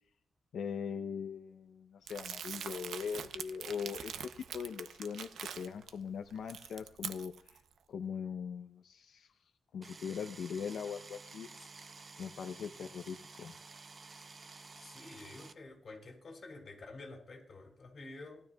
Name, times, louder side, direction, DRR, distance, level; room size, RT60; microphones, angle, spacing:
voice 1, 0.5-7.6 7.9-9.3 9.7-11.5 12.2-13.5, left 7 dB, 90° left, 6 dB, 0.6 m, -41 dB
Crumpling crinkling, 2.1-5.9 6.3-7.6, right 8 dB, 90° right, 0.6 m, -44 dB
sound 1, 9.8-15.5, right 4 dB, 35° right, 0.6 m, -52 dB
voice 2, 14.8-18.4, left 2 dB, 45° left, 1 dB, 4.4 m, -50 dB
19.0 x 12.5 x 2.3 m, 0.67 s
wide cardioid pair, 125°, 0 cm